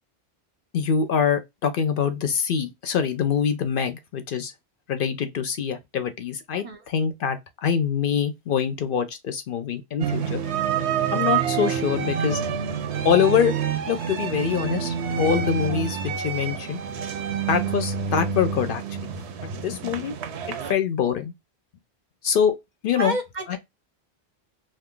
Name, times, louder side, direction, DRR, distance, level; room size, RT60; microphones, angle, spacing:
voice 1, 0.7-4.5 4.9-10.4 11.1-12.4 13.0-13.5 13.9-16.8 17.5-19.1 19.4-20.2 20.7-21.3 22.2-22.6 22.8-23.2 23.5-23.6, left 7 dB, 60° left, 0.7 m, -24 dB
sound 1, 10.0-20.7, right 7 dB, 85° right, 0.9 m, -28 dB
voice 2, 23.0-23.6, right 2 dB, 50° right, 0.7 m, -30 dB
2.6 x 2.4 x 3.6 m
omnidirectional pair, 1.1 m